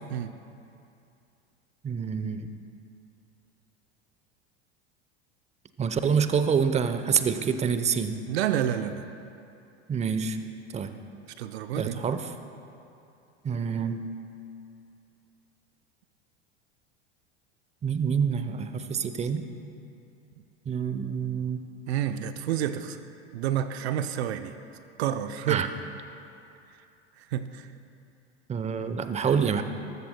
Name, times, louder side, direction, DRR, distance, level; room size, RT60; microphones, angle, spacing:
voice 1, 1.8-2.5 5.8-8.2 9.9-10.4 10.7-11.0 11.8-12.2 13.4-14.1 17.8-19.5 20.7-21.6 25.5-25.7 28.5-29.6, right 6 dB, 20° right, 10 dB, 0.7 m, -27 dB
voice 2, 8.3-9.1 11.4-12.0 21.9-23.0 23.3-24.5 25.0-25.7 27.2-27.7, right 10 dB, 70° right, 10 dB, 0.6 m, -29 dB
21.5 x 13.5 x 2.2 m, 2.6 s
hypercardioid pair, 85°, 34 cm